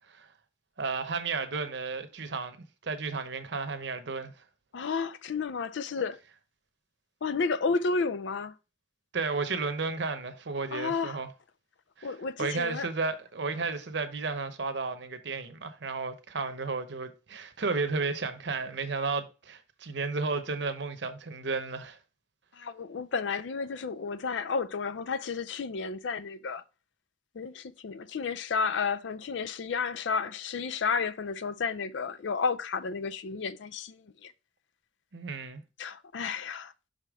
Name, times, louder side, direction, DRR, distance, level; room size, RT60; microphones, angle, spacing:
voice 1, 0.8-2.6 2.8-4.3 9.1-11.3 12.0-12.1 12.4-22.0 35.1-35.6, right 4 dB, 65° right, 0.8 m, -33 dB
voice 2, 4.7-6.2 7.2-8.5 10.7-11.2 12.0-12.9 22.5-26.6 27.3-34.3 35.8-36.7, left 5 dB, 70° left, 0.5 m, -32 dB
5.6 x 5.1 x 3.5 m
head